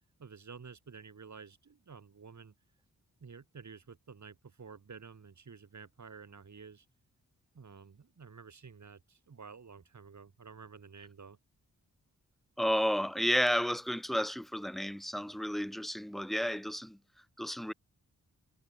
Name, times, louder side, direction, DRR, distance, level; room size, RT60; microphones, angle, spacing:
voice 1, 0.2-2.5 3.2-6.9 7.5-11.4, right 5 dB, 55° right, 7.2 m, -51 dB
voice 2, 12.6-17.0 17.4-17.7, equal, ahead, 0.5 m, -32 dB
cardioid pair, 75°, 33 cm